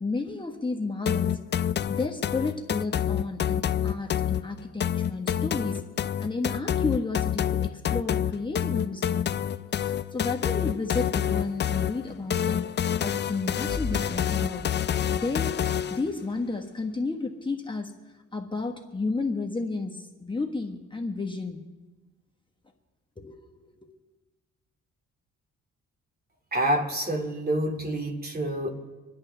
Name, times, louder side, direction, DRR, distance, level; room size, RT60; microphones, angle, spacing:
voice 1, 0.0-5.8 6.2-9.3 9.8-12.7 13.0-14.7 15.1-15.5 15.9-17.9 18.3-21.6 23.2-23.9, left 3 dB, 15° left, 2 dB, 1.2 m, -32 dB
sound 1, 1.1-16.1, left 9 dB, 35° left, 0.5 m, -28 dB
sound 2, 13.6-18.5, left 3 dB, 55° right, 4.2 m, -40 dB
voice 2, 26.5-28.7, right 1 dB, 30° right, 3 dB, 2.4 m, -27 dB
26.0 x 10.5 x 3.4 m, 1.3 s
cardioid pair, 90°, 30 cm